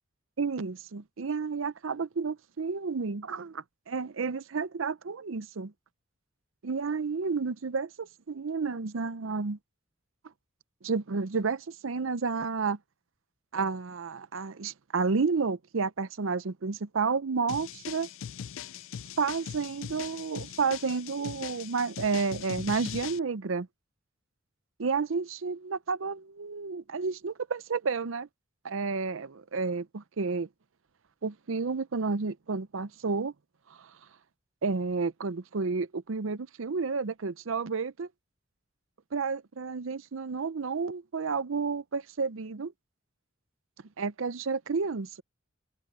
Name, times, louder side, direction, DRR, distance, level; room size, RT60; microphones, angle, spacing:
voice 1, 0.4-5.7 6.6-9.6 10.8-12.8 13.5-18.1 19.2-23.7 24.8-28.3 28.6-30.5 31.2-33.3 33.8-33.9 34.6-38.1 39.1-42.7 44.0-45.2, right 4 dB, 70° right, 0.6 m, -31 dB
sound 1, 17.5-23.2, left 8 dB, 70° left, 0.4 m, -40 dB
head